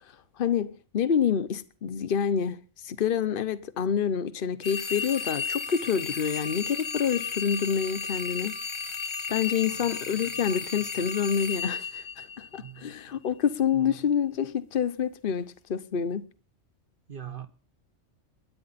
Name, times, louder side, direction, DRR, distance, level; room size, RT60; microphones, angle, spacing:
voice 1, 0.4-8.5 9.3-16.3, left 7 dB, 50° left, 1.0 m, -27 dB
sound 1, 4.6-12.8, left 5 dB, 25° left, 1.1 m, -34 dB
voice 2, 9.7-10.3 12.5-12.9 13.7-14.0 17.1-17.5, right 9 dB, 45° right, 1.4 m, -43 dB
20.5 x 11.0 x 4.2 m
omnidirectional pair, 1.3 m